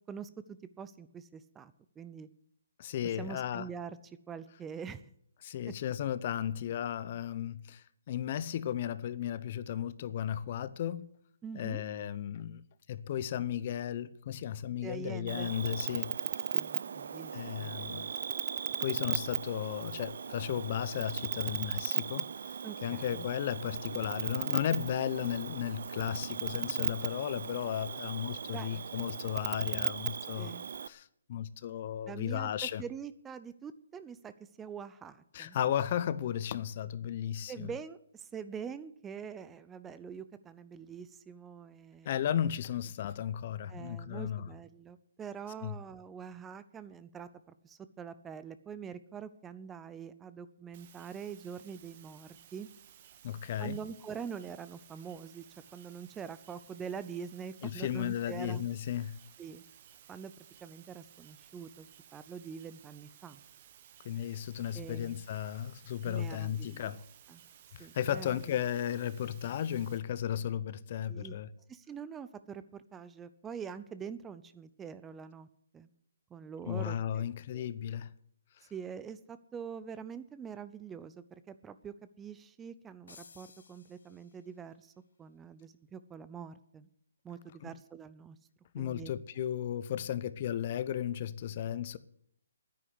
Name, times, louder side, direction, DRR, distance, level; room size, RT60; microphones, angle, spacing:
voice 1, 0.1-2.3 3.2-4.0 4.3-5.0 5.7-5.8 11.4-11.8 14.8-15.5 16.5-17.8 22.6-23.3 28.5-28.8 30.4-30.6 32.1-34.3 34.6-35.6 37.5-42.2 43.7-52.7 53.6-55.5 55.7-58.6 59.4-59.6 60.1-60.3 60.6-61.9 62.1-63.4 64.7-65.2 66.0-66.9 67.3-67.4 67.8-68.4 71.1-71.4 71.7-75.5 75.7-75.9 76.3-77.3 77.5-77.7 78.7-84.9 85.2-86.9 87.2-88.4 88.8-89.1, right 7 dB, 10° right, 0.5 m, -44 dB
voice 2, 2.8-3.7 5.4-11.1 11.5-12.6 12.9-16.1 17.3-18.1 18.8-22.3 22.8-30.5 30.8-32.8 35.3-37.7 42.0-44.5 45.6-45.7 53.2-53.8 57.6-59.2 64.0-67.0 67.7-71.5 76.7-78.1 87.6-87.7 88.7-92.0, left 10 dB, 40° left, 0.7 m, -35 dB
Cricket, 15.3-30.9, right 6 dB, 60° right, 0.6 m, -37 dB
sound 1, 50.7-70.0, right 10 dB, 35° right, 1.3 m, -58 dB
sound 2, 83.1-84.7, left 4 dB, 70° left, 1.8 m, -57 dB
9.9 x 9.6 x 10.0 m
hypercardioid pair, 150°, 0 cm